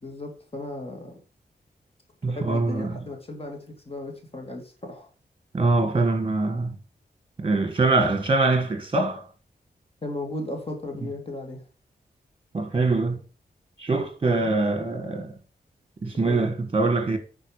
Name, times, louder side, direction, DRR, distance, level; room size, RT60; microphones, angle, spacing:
voice 1, 0.0-1.2 2.3-5.1 10.0-11.6 14.4-14.6 16.2-16.5, left 2 dB, 35° left, 2.0 m, -36 dB
voice 2, 2.2-3.0 5.5-6.8 7.4-9.2 12.5-13.2 13.8-15.3 16.0-17.2, right 3 dB, 30° right, 1.6 m, -23 dB
9.8 x 4.5 x 5.0 m
wide cardioid pair, 110°, 17 cm